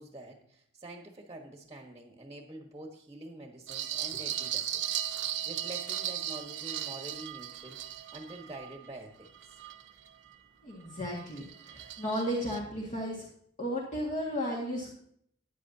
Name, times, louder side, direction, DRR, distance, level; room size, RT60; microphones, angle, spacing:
voice 1, 0.0-4.9 5.2-7.8 8.1-9.3, right 1 dB, 20° right, 2 dB, 1.3 m, -46 dB
sound 1, 3.7-10.4 10.8-12.6, right 11 dB, 70° right, 0.8 m, -37 dB
voice 2, 10.6-13.3 13.6-14.9, equal, 40° left, -4 dB, 1.9 m, -34 dB
14.5 x 9.7 x 2.8 m, 0.66 s
head